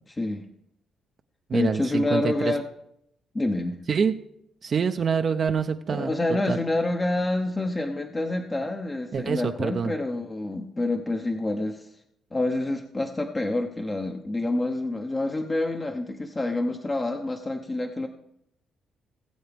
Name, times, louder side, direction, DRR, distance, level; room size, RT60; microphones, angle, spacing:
voice 1, 0.1-0.5 1.5-2.6 3.3-3.8 5.9-11.9 12.3-18.1, left 2 dB, 25° left, 4 dB, 0.8 m, -27 dB
voice 2, 1.5-2.5 3.9-4.1 4.6-6.6 9.1-9.9, right 6 dB, 50° right, 6 dB, 0.6 m, -26 dB
19.5 x 7.9 x 3.5 m, 0.78 s
cardioid pair, 90°, 0 cm